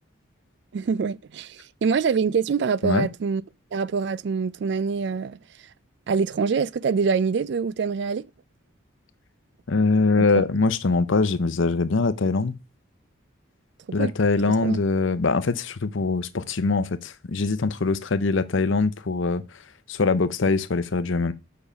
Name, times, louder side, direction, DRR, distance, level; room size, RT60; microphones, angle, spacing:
voice 1, 0.7-3.4 3.7-5.4 6.1-8.2 13.9-14.1 14.6-14.8, right 5 dB, 55° right, 0.3 m, -25 dB
voice 2, 9.7-12.6 13.9-19.4 19.9-21.3, left 3 dB, 70° left, 0.7 m, -23 dB
7.0 x 5.6 x 5.0 m
head